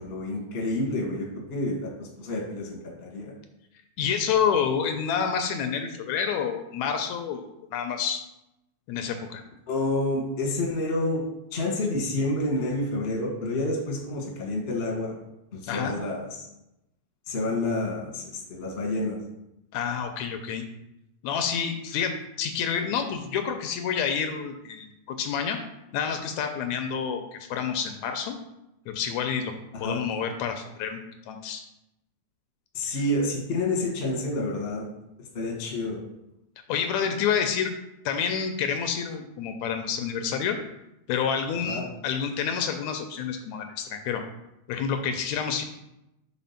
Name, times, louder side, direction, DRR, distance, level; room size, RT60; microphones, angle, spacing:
voice 1, 0.0-3.3 9.7-11.2 11.5-15.2 15.5-16.5 17.3-18.2 18.5-19.2 29.7-30.1 32.7-34.8 35.3-36.0 41.6-41.8, left 2 dB, 35° left, -2 dB, 1.0 m, -29 dB
voice 2, 4.0-7.4 7.7-8.2 8.9-9.4 15.7-15.9 19.7-20.6 21.2-25.6 25.9-28.4 28.9-29.5 29.8-31.0 31.3-31.6 32.8-33.0 36.7-37.7 38.1-40.6 41.1-44.2 44.7-45.6, left 7 dB, 80° left, 6 dB, 1.9 m, -28 dB
5.1 x 4.0 x 5.7 m, 0.87 s
omnidirectional pair, 3.4 m